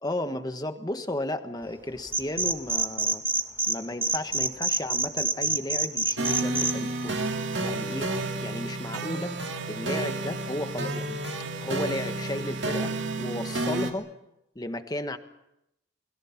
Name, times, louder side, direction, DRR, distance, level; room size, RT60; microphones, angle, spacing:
voice 1, 0.0-3.2 3.7-7.3 7.6-8.1 8.4-9.3 9.7-11.2 11.6-14.1 14.5-15.2, left 1 dB, 20° left, 8 dB, 1.5 m, -34 dB
sound 1, 2.1-3.7 4.0-6.7, right 3 dB, 15° right, 1.9 m, -26 dB
sound 2, 6.2-13.9, right 2 dB, 70° right, 2.5 m, -31 dB
28.5 x 22.0 x 6.0 m, 0.85 s
head